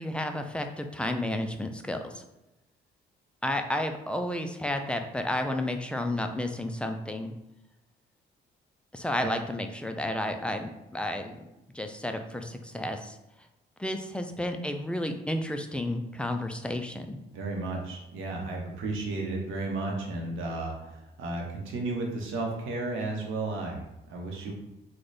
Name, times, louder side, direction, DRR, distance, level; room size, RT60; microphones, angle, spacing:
voice 1, 0.0-2.2 3.4-7.3 8.9-11.4 11.7-13.2 13.8-17.2, left 1 dB, 5° left, 5 dB, 0.3 m, -32 dB
voice 2, 17.3-24.5, right 2 dB, 85° right, 0 dB, 0.8 m, -33 dB
3.2 x 2.2 x 3.9 m, 0.95 s
cardioid pair, 90°, 20 cm